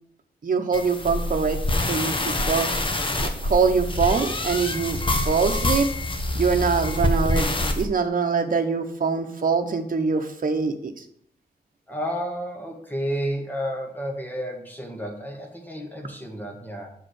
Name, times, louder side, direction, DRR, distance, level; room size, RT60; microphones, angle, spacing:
voice 1, 0.4-5.9 6.3-11.0, right 5 dB, 55° right, 5 dB, 1.0 m, -24 dB
sound 1, 0.7-7.8, left 1 dB, 30° left, 0.9 m, -26 dB
voice 2, 11.9-16.9, equal, 10° left, 1 dB, 1.5 m, -31 dB
6.6 x 4.9 x 6.5 m, 0.69 s
wide cardioid pair, 135°, 16 cm